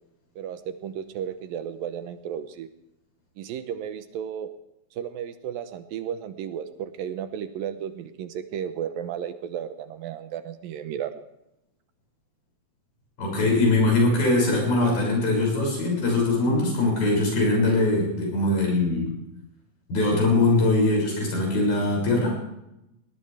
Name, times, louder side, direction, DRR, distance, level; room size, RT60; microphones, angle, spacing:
voice 1, 0.4-2.7 3.4-4.5 4.9-11.1, right 9 dB, 75° right, 10 dB, 2.5 m, -34 dB
voice 2, 13.2-19.1 19.9-22.4, left 2 dB, 75° left, -1 dB, 8.4 m, -22 dB
19.5 x 18.5 x 3.4 m, 0.83 s
omnidirectional pair, 4.4 m